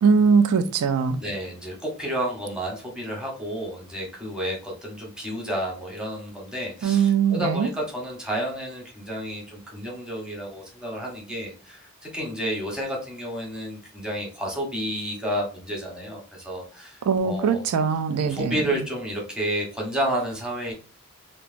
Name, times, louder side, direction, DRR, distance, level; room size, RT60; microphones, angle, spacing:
voice 1, 0.0-1.2 6.8-7.7 17.1-18.5, right 6 dB, 90° right, 0.3 m, -21 dB
voice 2, 1.2-17.7 18.2-20.7, equal, 5° right, 0.8 m, -31 dB
3.0 x 2.2 x 2.4 m
head